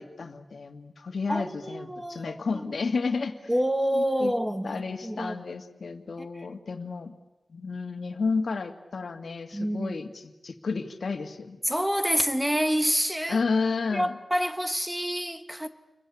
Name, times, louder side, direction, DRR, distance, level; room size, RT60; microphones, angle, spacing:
voice 1, 0.0-3.4 3.9-4.3 4.6-7.1 7.5-11.6 13.3-14.1, left 4 dB, 70° left, 2.0 m, -31 dB
voice 2, 1.3-2.8 3.5-5.4 6.2-6.5 9.5-10.0 11.6-13.4 13.9-15.7, equal, 5° right, 1.5 m, -28 dB
29.0 x 22.0 x 8.6 m
wide cardioid pair, 120°, 0 cm